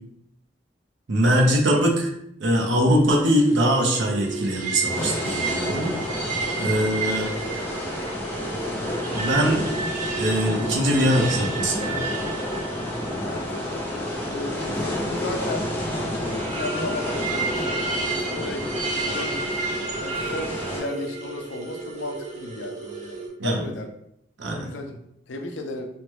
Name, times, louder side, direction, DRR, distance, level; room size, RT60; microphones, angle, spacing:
voice 1, 1.1-1.9 2.4-5.9 6.6-7.3 9.1-9.7 10.2-12.0 23.4-23.6 24.4-24.7, equal, 80° right, 0 dB, 0.7 m, -22 dB
sound 1, 3.5-23.3, right 3 dB, 40° right, 0.5 m, -32 dB
sound 2, 4.9-20.8, left 1 dB, 10° left, 0.5 m, -30 dB
voice 2, 6.6-6.9 13.2-13.7 14.2-15.7 15.9-17.7 18.0-19.6 20.0-23.9 24.6-25.0 25.3-25.9, left 2 dB, 85° left, 5 dB, 0.5 m, -35 dB
3.1 x 2.1 x 3.0 m, 0.76 s
head